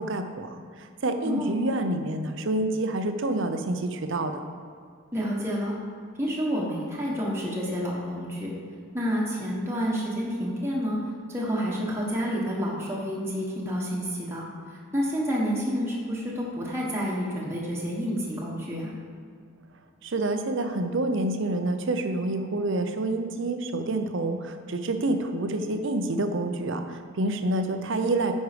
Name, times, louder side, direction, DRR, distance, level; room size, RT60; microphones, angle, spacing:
voice 1, 0.0-4.4 20.0-28.3, right 2 dB, 55° right, 7 dB, 0.6 m, -28 dB
voice 2, 1.2-1.6 5.1-5.7 6.2-8.5 8.9-11.0 11.3-18.9, equal, 10° right, -5 dB, 1.2 m, -29 dB
9.5 x 5.4 x 5.1 m, 2.2 s
head